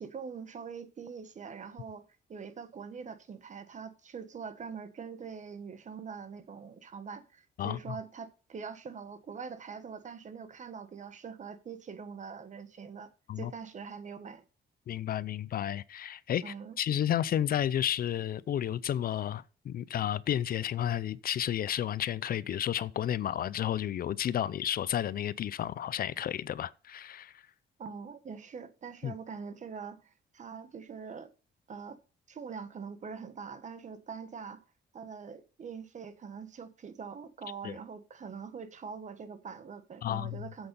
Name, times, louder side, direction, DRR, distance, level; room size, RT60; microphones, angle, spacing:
voice 1, 0.0-2.0 2.3-13.1 13.4-14.4 16.4-16.8 27.8-31.3 31.7-32.0 32.3-34.6 34.9-40.7, right 6 dB, 45° right, 1.2 m, -43 dB
voice 2, 14.9-27.3 29.0-29.1 37.6-37.8 40.0-40.4, left 10 dB, 55° left, 0.5 m, -32 dB
8.0 x 7.9 x 5.2 m
cardioid pair, 120°, 18 cm